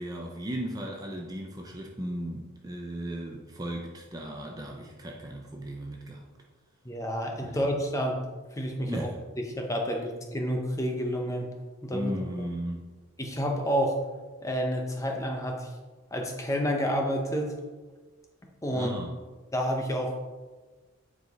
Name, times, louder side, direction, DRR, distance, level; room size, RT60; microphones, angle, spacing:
voice 1, 0.0-6.2 7.4-7.6 8.9-9.2 11.9-12.9 18.7-19.1, right 1 dB, 15° right, 1 dB, 0.6 m, -36 dB
voice 2, 6.8-8.2 8.5-9.1 9.6-11.5 11.8-12.1 13.2-14.0 14.4-15.7 16.1-17.5 18.6-19.0 19.5-20.2, equal, 15° left, 2 dB, 0.8 m, -29 dB
8.9 x 4.9 x 4.1 m, 1.3 s
head